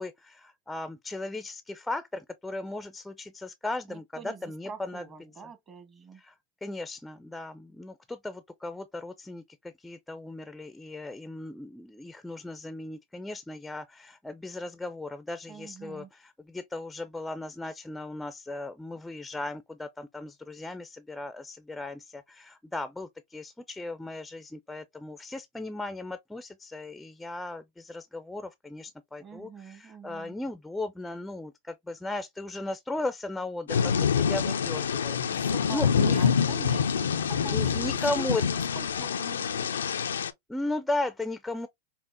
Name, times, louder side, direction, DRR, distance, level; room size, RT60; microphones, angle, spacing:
voice 1, 0.0-5.0 6.2-6.3 6.6-36.2 37.4-38.4 40.5-41.7, left 2 dB, 5° left, 0.4 m, -36 dB
voice 2, 3.9-6.2 15.5-16.1 29.2-30.4 35.2-37.8 38.1-38.5 38.7-39.7, right 6 dB, 30° right, 1.0 m, -45 dB
Thunder / Rain, 33.7-40.3, left 6 dB, 85° left, 0.4 m, -26 dB
5.5 x 2.1 x 2.5 m
hypercardioid pair, 110°, 0 cm